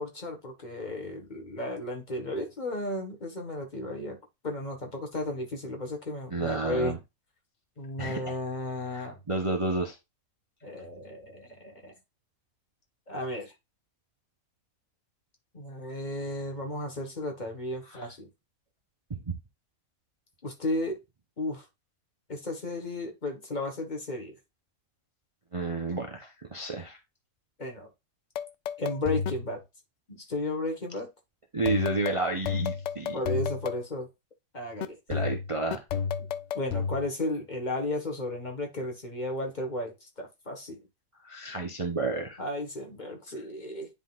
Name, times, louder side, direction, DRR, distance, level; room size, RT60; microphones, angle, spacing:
voice 1, 0.0-4.2 4.4-7.0 7.8-9.2 10.6-11.9 13.1-13.5 15.5-18.3 20.4-21.0 21.4-21.6 22.3-24.4 27.6-27.9 28.8-29.6 30.1-31.1 33.1-34.1 34.5-35.0 36.5-40.8 42.4-43.9, left 1 dB, 35° left, 1.4 m, -34 dB
voice 2, 6.3-7.0 8.0-8.3 8.9-10.0 17.9-18.1 19.1-19.4 25.5-27.0 31.5-33.2 35.1-35.8 41.2-42.4, right 3 dB, 30° right, 0.7 m, -31 dB
sound 1, 28.4-29.6 31.6-33.8 34.8-37.1, left 6 dB, 65° left, 0.8 m, -31 dB
10.5 x 3.8 x 2.4 m
omnidirectional pair, 1.5 m